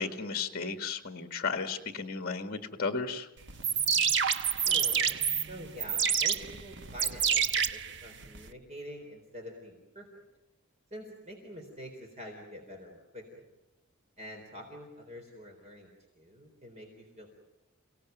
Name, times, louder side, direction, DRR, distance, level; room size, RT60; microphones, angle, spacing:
voice 1, 0.0-3.3, left 4 dB, 45° left, 7 dB, 1.7 m, -34 dB
sound 1, 3.5-8.5, right 7 dB, 55° right, 1.1 m, -28 dB
voice 2, 4.6-7.4 7.7-10.1 10.9-13.4 14.2-15.9 16.2-17.3, equal, 30° right, 2 dB, 3.9 m, -46 dB
29.5 x 18.0 x 9.3 m, 1.0 s
head